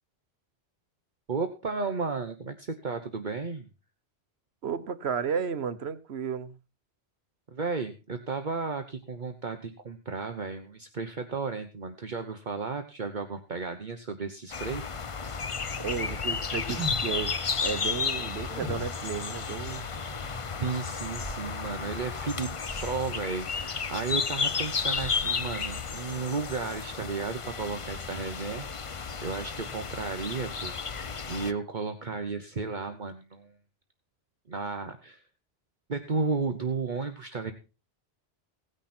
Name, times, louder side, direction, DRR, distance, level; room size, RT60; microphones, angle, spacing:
voice 1, 1.3-3.7 7.5-14.9 20.6-33.5 34.5-35.2 35.9-37.5, right 4 dB, 50° right, 1.2 m, -34 dB
voice 2, 4.6-6.5 15.8-19.9, right 6 dB, 80° right, 1.3 m, -33 dB
sound 1, 14.5-31.5, left 5 dB, 35° left, 0.7 m, -33 dB
sound 2, 15.9-17.5 18.4-19.3 20.8-20.9 21.1-22.1 22.7-23.2, equal, 5° left, 6.4 m, -39 dB
sound 3, 18.5-19.7 20.1-21.4 21.6-23.0 23.5-23.6 24.4-25.2, left 1 dB, 60° left, 4.6 m, -55 dB
17.5 x 9.9 x 4.4 m
omnidirectional pair, 1.1 m